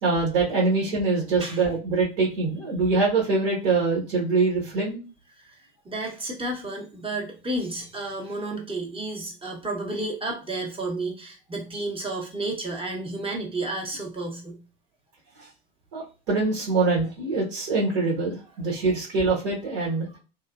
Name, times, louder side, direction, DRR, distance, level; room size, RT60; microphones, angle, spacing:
voice 1, 0.0-5.0 15.9-20.1, right 3 dB, 70° right, -4 dB, 1.2 m, -24 dB
voice 2, 5.8-14.6, right 2 dB, 20° right, 0 dB, 1.0 m, -31 dB
3.2 x 2.1 x 2.4 m, 0.32 s
hypercardioid pair, 75°, 29 cm